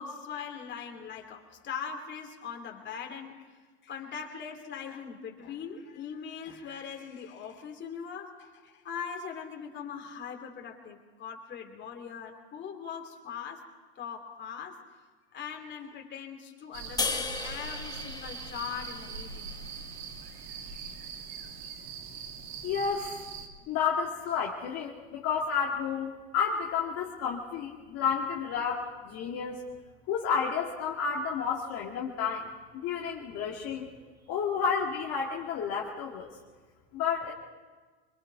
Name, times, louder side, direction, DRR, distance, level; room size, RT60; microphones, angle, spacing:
voice 1, 0.0-3.4 3.8-13.6 14.0-14.8 15.3-19.5, left 7 dB, 35° left, 3 dB, 2.9 m, -41 dB
sound 1, 16.7-23.5, right 5 dB, 65° right, 2.4 m, -42 dB
sound 2, 17.0-20.3, left 4 dB, 10° left, 1.3 m, -36 dB
voice 2, 22.6-23.2 23.7-29.6 30.1-33.9 34.3-36.3 36.9-37.3, left 6 dB, 50° left, -3 dB, 2.3 m, -31 dB
25.5 x 21.5 x 4.7 m, 1.4 s
hypercardioid pair, 105°, 33 cm